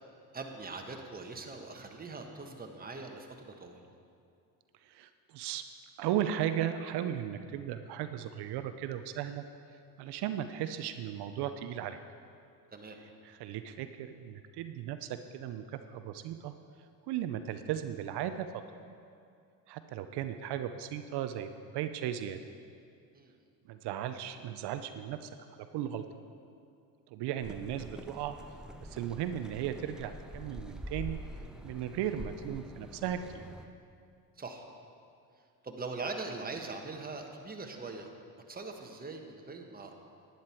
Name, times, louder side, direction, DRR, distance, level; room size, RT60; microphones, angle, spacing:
voice 1, 0.3-3.8 12.7-13.0 23.1-23.3 34.4-34.6 35.6-38.1 38.5-39.9, right 3 dB, 20° right, 3 dB, 1.3 m, -42 dB
voice 2, 4.8-5.6 6.0-9.5 10.0-12.0 13.2-16.5 17.1-18.5 19.7-22.4 23.7-25.3 25.7-26.0 27.1-28.3 28.8-31.2 31.6-33.4, right 10 dB, 60° right, 9 dB, 0.7 m, -36 dB
sound 1, 27.4-33.7, equal, ahead, 0.6 m, -46 dB
10.5 x 10.5 x 4.5 m, 2.4 s
supercardioid pair, 90°, 46 cm